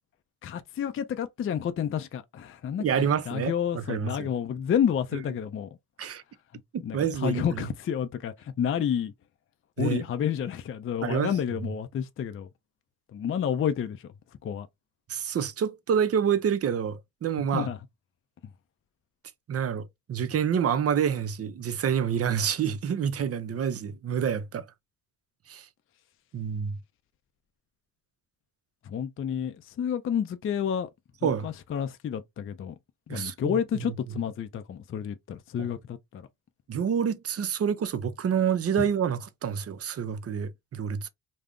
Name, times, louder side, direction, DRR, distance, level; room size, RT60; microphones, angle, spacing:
voice 1, 0.4-5.7 6.8-9.1 9.8-12.5 13.1-14.0 14.4-14.7 17.5-17.8 28.9-30.9 31.2-32.8 33.1-36.3, left 8 dB, 35° left, 0.4 m, -30 dB
voice 2, 2.8-4.3 6.0-6.2 6.7-7.7 9.8-10.0 11.0-11.3 15.1-17.7 19.5-24.7 25.5-25.7 26.3-26.8 31.2-31.5 33.1-33.9 35.6-35.7 36.7-41.1, right 8 dB, 40° right, 0.5 m, -28 dB
2.4 x 2.0 x 3.5 m
cardioid pair, 75°, 39 cm